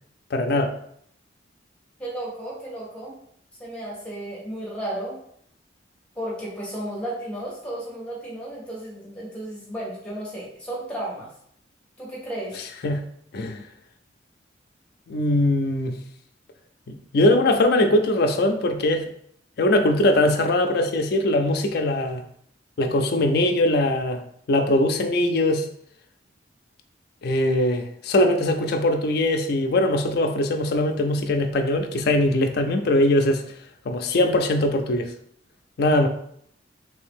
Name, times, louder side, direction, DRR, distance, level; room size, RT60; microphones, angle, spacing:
voice 1, 0.3-0.7 12.8-13.0 13.3-13.6 15.1-15.9 16.9-19.0 19.6-22.2 22.8-24.2 24.5-25.6 27.2-33.4 33.9-35.1 35.8-36.1, left 1 dB, 55° left, 5 dB, 0.4 m, -21 dB
voice 2, 2.0-3.1 3.6-5.2 6.1-11.3 12.0-12.6, right 1 dB, 5° left, -6 dB, 1.0 m, -33 dB
3.3 x 2.7 x 3.5 m, 0.66 s
head